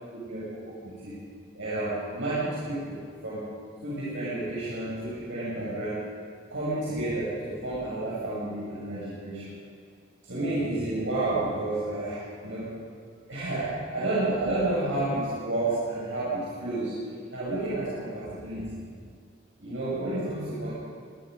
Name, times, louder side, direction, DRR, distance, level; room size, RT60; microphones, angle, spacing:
voice 1, 0.1-1.2 1.5-3.0 3.2-3.5 3.8-6.1 6.5-9.6 10.2-12.8 13.3-17.0 17.3-18.9 19.6-20.7, right 2 dB, 85° right, -9 dB, 7.1 m, -31 dB
25.5 x 20.5 x 5.4 m, 2.2 s
head